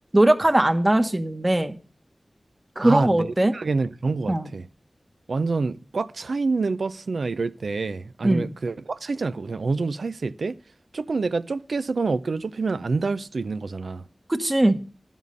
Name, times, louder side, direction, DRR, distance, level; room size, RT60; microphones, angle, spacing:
voice 1, 0.1-1.8 2.8-3.5 4.3-4.5 8.2-8.5 14.3-14.8, right 1 dB, 30° right, 1.1 m, -20 dB
voice 2, 2.8-4.7 5.3-10.6 10.9-14.0, right 4 dB, 90° right, 0.5 m, -27 dB
11.5 x 7.2 x 5.3 m
cardioid pair, 45°, 0 cm